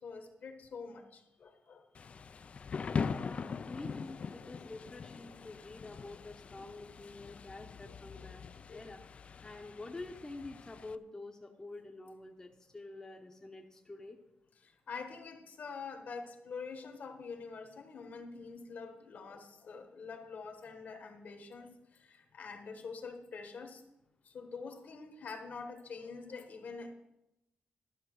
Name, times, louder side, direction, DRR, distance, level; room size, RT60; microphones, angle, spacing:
voice 1, 0.0-1.8 8.2-8.9 14.6-23.8 24.2-26.9, left 5 dB, 55° left, 6 dB, 1.3 m, -46 dB
Thunder / Rain, 1.9-11.0, left 5 dB, 40° left, 0.3 m, -42 dB
voice 2, 3.1-8.4 8.7-9.0 9.4-14.2 16.8-16.9, left 2 dB, 15° left, 2 dB, 0.8 m, -47 dB
12.0 x 5.7 x 6.2 m, 0.90 s
wide cardioid pair, 140°, 3 cm